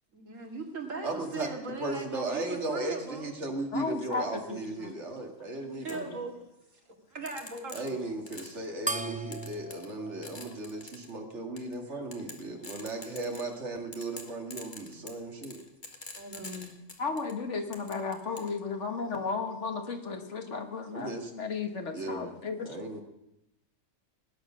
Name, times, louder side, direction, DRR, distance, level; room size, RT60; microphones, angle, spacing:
voice 1, 0.1-3.3 5.8-6.4 7.1-8.0 11.9-12.1 16.2-16.7, right 3 dB, 85° right, 2 dB, 2.6 m, -39 dB
voice 2, 1.0-6.1 7.7-15.6 20.9-21.3 21.9-22.3 22.6-23.0, right 2 dB, 65° right, 3 dB, 2.4 m, -36 dB
voice 3, 3.7-4.9 5.9-6.2 17.0-22.8, left 4 dB, 65° left, 5 dB, 1.9 m, -34 dB
sound 1, 5.9-6.0 7.3-8.6 9.3-10.0 10.2-11.1 11.6-11.7 12.1-13.6 13.9-17.3 17.7-18.5, left 3 dB, 40° left, 1.9 m, -45 dB
sound 2, 8.9-11.7, right 2 dB, 10° right, 0.3 m, -39 dB
19.0 x 9.9 x 6.2 m, 0.89 s
omnidirectional pair, 1.3 m